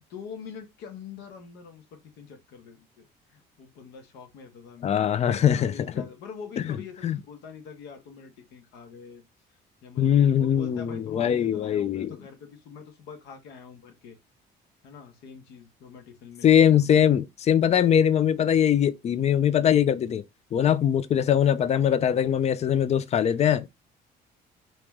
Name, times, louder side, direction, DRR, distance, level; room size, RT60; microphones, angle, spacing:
voice 1, 0.1-9.2 9.5-14.2 14.8-16.9 17.7-17.9, left 6 dB, 85° left, 1.2 m, -45 dB
voice 2, 4.8-6.0 7.0-7.2 10.0-12.1 16.4-20.2 20.5-23.7, left 9 dB, 40° left, 0.4 m, -22 dB
3.1 x 3.0 x 3.5 m
cardioid pair, 110°, 17 cm